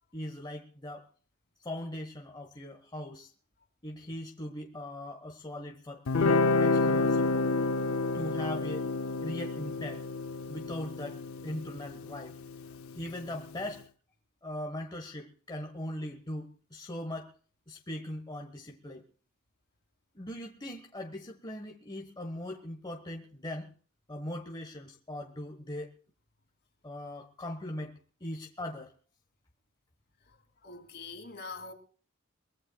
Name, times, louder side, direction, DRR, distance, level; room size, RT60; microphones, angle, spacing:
voice 1, 0.1-1.1 1.6-3.3 3.8-7.5 8.1-8.9 9.2-10.0 10.5-12.4 12.9-13.8 14.4-17.3 17.7-19.0 20.1-23.7 24.1-25.9 26.8-28.9, left 1 dB, 20° left, 1.3 m, -40 dB
Guitar, 6.1-13.2, left 3 dB, 80° left, 0.6 m, -29 dB
voice 2, 30.2-31.7, left 3 dB, 55° left, 2.9 m, -45 dB
23.0 x 19.5 x 2.3 m
head